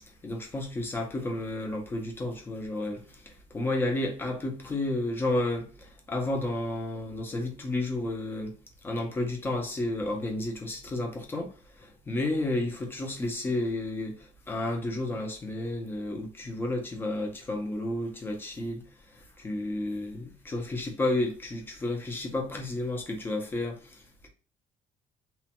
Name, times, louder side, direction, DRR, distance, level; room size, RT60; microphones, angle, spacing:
voice 1, 0.1-8.5 8.8-24.3, left 2 dB, 15° left, 0.5 m, -32 dB
3.1 x 2.1 x 2.9 m
cardioid pair, 180°, 14 cm